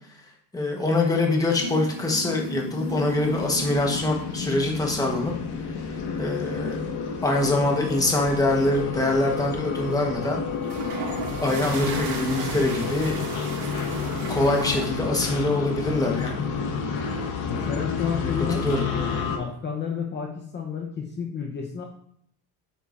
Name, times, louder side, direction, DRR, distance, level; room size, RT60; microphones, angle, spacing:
voice 1, 0.5-5.3 6.2-6.9 7.2-10.4 11.4-13.3 14.3-16.5 18.2-18.9, left 2 dB, 10° left, 0 dB, 1.1 m, -24 dB
sound 1, 1.6-4.7 5.2-5.5 7.0-8.7 9.1-9.5 10.5-14.9, right 2 dB, 80° right, 2.2 m, -36 dB
sound 2, 2.7-19.4, left 5 dB, 70° left, 1.6 m, -30 dB
voice 2, 17.5-21.8, left 6 dB, 25° left, 0 dB, 0.8 m, -31 dB
8.8 x 8.4 x 2.6 m, 0.70 s
cardioid pair, 160°, 40 cm